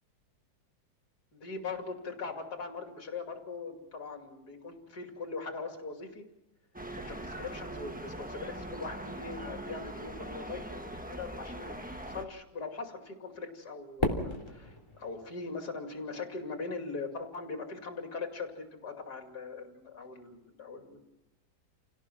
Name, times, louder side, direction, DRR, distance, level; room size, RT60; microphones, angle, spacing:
voice 1, 1.3-6.2 7.0-21.0, left 4 dB, 70° left, 3 dB, 3.2 m, -41 dB
sound 1, 6.7-12.2, right 1 dB, 5° right, 1.0 m, -41 dB
Fireworks, 14.0-16.3, left 1 dB, 15° left, 3.2 m, -35 dB
29.0 x 17.5 x 6.1 m, 0.96 s
omnidirectional pair, 1.8 m